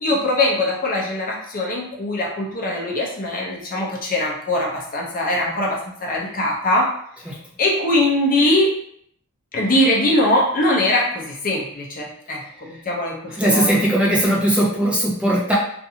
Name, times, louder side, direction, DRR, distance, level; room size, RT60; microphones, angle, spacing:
voice 1, 0.0-6.9 7.6-8.8 9.5-12.4 12.7-13.8, left 1 dB, 40° left, -2 dB, 0.6 m, -21 dB
voice 2, 13.3-15.5, right 1 dB, 5° right, -5 dB, 0.4 m, -19 dB
2.6 x 2.5 x 2.7 m, 0.66 s
head